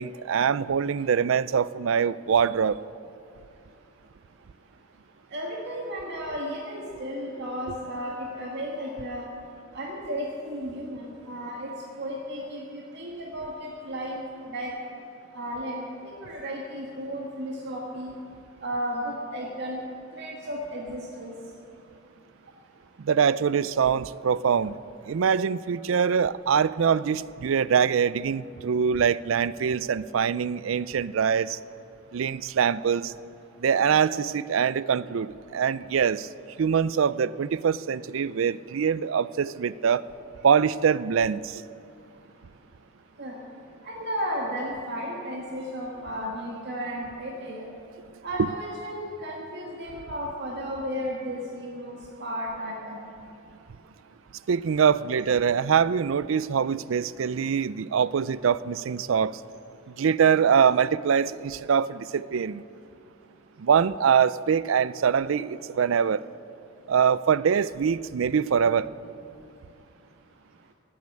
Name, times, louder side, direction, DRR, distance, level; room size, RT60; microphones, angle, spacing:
voice 1, 0.0-2.8 23.0-24.8 25.1-31.6 32.1-33.1 33.6-36.3 36.6-40.0 40.4-41.6 54.5-59.4 60.0-62.6 63.6-66.2 66.9-68.9, right 7 dB, 70° right, 18 dB, 0.4 m, -23 dB
voice 2, 5.3-9.3 9.7-11.7 12.0-14.2 14.5-14.7 15.3-18.1 18.6-19.8 20.1-21.3 43.2-43.4 43.8-47.7 48.2-53.0, equal, 55° right, -2 dB, 1.9 m, -34 dB
17.0 x 8.5 x 9.4 m, 2.6 s
head